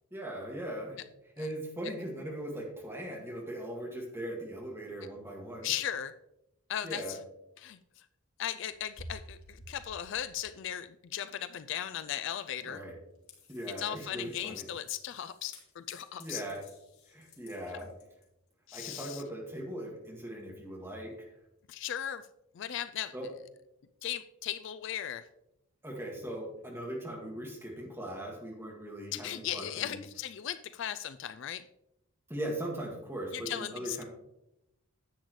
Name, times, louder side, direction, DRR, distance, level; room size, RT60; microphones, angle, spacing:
voice 1, 0.1-1.0 1.4-5.7 6.8-7.1 12.7-12.9 13.5-14.7 16.2-16.6 17.1-17.9 18.7-21.1 23.1-23.3 25.8-30.0 32.3-34.0, right 1 dB, 10° right, -2 dB, 1.9 m, -39 dB
voice 2, 5.6-6.1 6.7-7.2 7.6-7.8 8.4-12.8 13.8-16.4 18.7-19.2 21.7-22.2 22.5-23.1 24.0-25.3 29.1-31.6 33.3-34.0, left 10 dB, 55° left, 12 dB, 0.3 m, -37 dB
sound 1, 8.7-10.8 11.4-11.5 12.8-12.9 13.1-18.5 20.4-20.5, left 1 dB, 85° left, 1.8 m, -53 dB
10.5 x 7.9 x 3.1 m, 0.86 s
head